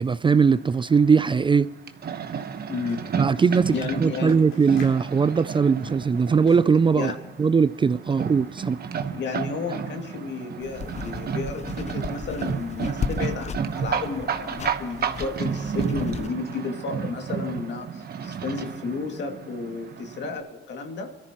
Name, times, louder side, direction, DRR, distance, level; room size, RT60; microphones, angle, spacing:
voice 1, 0.0-1.7 3.2-7.1 7.4-8.8, right 5 dB, 25° right, 0.4 m, -20 dB
sound 1, 0.5-20.4, right 7 dB, 50° right, 1.1 m, -32 dB
sound 2, 1.8-1.9 2.2-6.9, left 3 dB, 80° left, 3.7 m, -48 dB
voice 2, 2.7-3.0 3.7-4.3 7.0-7.2 9.1-21.1, left 4 dB, 65° left, 2.4 m, -32 dB
sound 3, 10.6-16.3, left 6 dB, 35° left, 0.5 m, -35 dB
24.5 x 14.0 x 3.0 m
cardioid pair, 90°, 20 cm